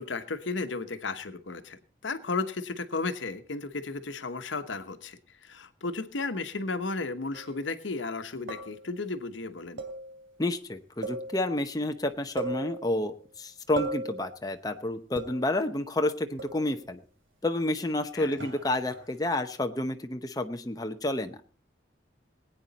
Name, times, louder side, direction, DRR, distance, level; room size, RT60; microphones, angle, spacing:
voice 1, 0.0-9.8 18.1-18.4, left 3 dB, 85° left, 9 dB, 1.0 m, -34 dB
sound 1, 7.3-7.6 8.5-9.0 9.8-10.4 11.0-11.7 12.0-12.1 12.4-13.2 13.8-14.4 15.2-15.7 16.4-16.9 18.4-19.3, right 2 dB, 85° right, 2.7 m, -38 dB
voice 2, 10.4-17.0 17.4-21.4, left 1 dB, 20° left, 6 dB, 0.7 m, -30 dB
21.0 x 9.1 x 4.1 m, 0.42 s
head